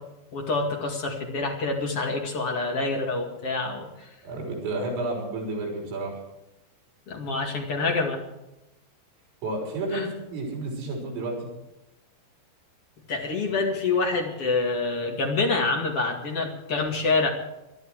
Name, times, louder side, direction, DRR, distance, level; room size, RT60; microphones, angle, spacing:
voice 1, 0.3-4.1 7.1-8.2 9.9-10.1 13.1-17.3, left 3 dB, 45° left, 1 dB, 2.1 m, -26 dB
voice 2, 4.2-6.2 9.4-11.5, right 2 dB, 80° right, -2 dB, 8.4 m, -31 dB
21.0 x 12.5 x 4.8 m, 0.93 s
omnidirectional pair, 5.8 m